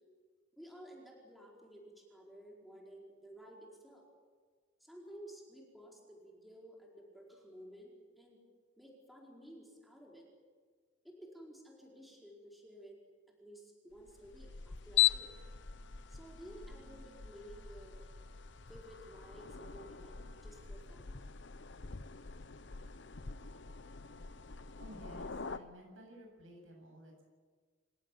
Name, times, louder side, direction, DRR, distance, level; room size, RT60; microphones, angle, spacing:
voice 1, 0.5-4.0 4.8-8.4 8.8-10.3 11.0-13.0 13.4-15.3 16.1-18.0 18.7-21.1, right 1 dB, ahead, -2 dB, 4.7 m, -54 dB
sound 1, 14.0-25.6, left 12 dB, 65° left, 0.8 m, -40 dB
voice 2, 24.8-27.2, equal, 80° right, 1 dB, 7.9 m, -54 dB
27.0 x 16.5 x 9.3 m, 1.5 s
head